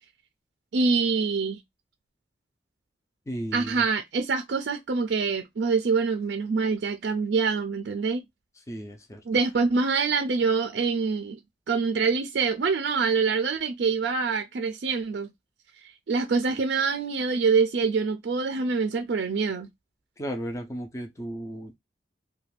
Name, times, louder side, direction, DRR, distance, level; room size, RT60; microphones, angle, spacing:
voice 1, 0.7-1.6 3.5-8.2 9.3-11.4 11.7-15.3 15.8-19.7, right 4 dB, 65° right, 0.4 m, -25 dB
voice 2, 3.3-3.9 8.6-9.2 20.2-21.7, equal, 15° left, 0.4 m, -35 dB
2.4 x 2.3 x 3.2 m
head